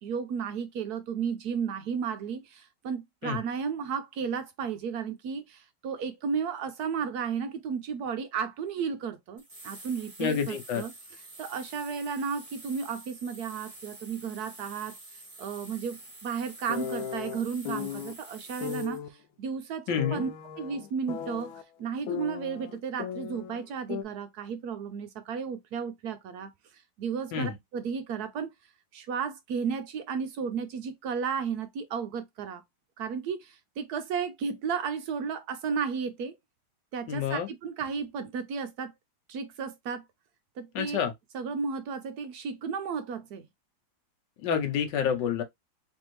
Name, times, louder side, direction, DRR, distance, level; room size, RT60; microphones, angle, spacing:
voice 1, 0.0-28.5 28.9-32.6 33.0-36.4 36.9-38.9 39.3-40.1 40.6-41.0 41.3-43.5, right 6 dB, 75° right, 0.9 m, -34 dB
sound 1, 9.4-19.0, right 2 dB, 25° right, 0.8 m, -48 dB
voice 2, 10.2-10.9 19.9-20.2 27.3-27.5 37.1-37.5 40.7-41.1 44.4-45.4, left 8 dB, 70° left, 1.3 m, -28 dB
sound 2, 16.7-18.1 18.6-19.1 20.0-21.6 22.1-23.6 23.9-24.0, left 8 dB, 85° left, 1.4 m, -36 dB
3.5 x 3.3 x 3.0 m
omnidirectional pair, 2.1 m